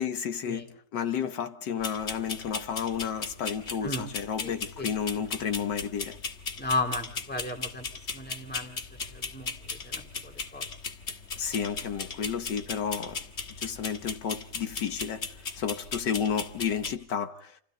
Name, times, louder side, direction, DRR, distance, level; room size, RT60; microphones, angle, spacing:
voice 1, 0.0-6.2 11.4-13.3 13.6-17.6, left 7 dB, 80° left, 1.8 m, -32 dB
sound 1, 1.8-16.9, left 4 dB, 40° left, 1.8 m, -38 dB
voice 2, 6.6-7.8 8.1-8.8 9.1-9.5 9.8-10.6, left 2 dB, 5° left, 3.0 m, -34 dB
28.5 x 28.0 x 3.9 m
omnidirectional pair, 1.9 m